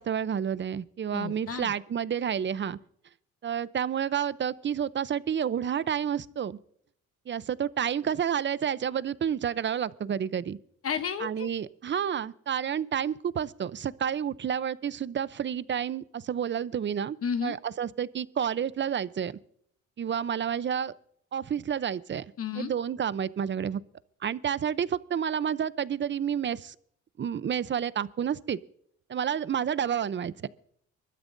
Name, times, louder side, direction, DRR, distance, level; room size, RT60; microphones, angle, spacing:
voice 1, 0.0-2.8 3.4-6.6 7.3-10.6 11.2-19.4 20.0-20.9 21.3-22.2 22.6-23.8 24.2-26.7 27.2-28.6 29.1-30.5, right 8 dB, 40° right, 17 dB, 0.7 m, -30 dB
voice 2, 1.1-1.7 10.8-11.5 17.2-17.6 22.4-22.7, left 7 dB, 50° left, 8 dB, 1.0 m, -32 dB
24.0 x 13.0 x 2.6 m, 0.66 s
cardioid pair, 90°, 30 cm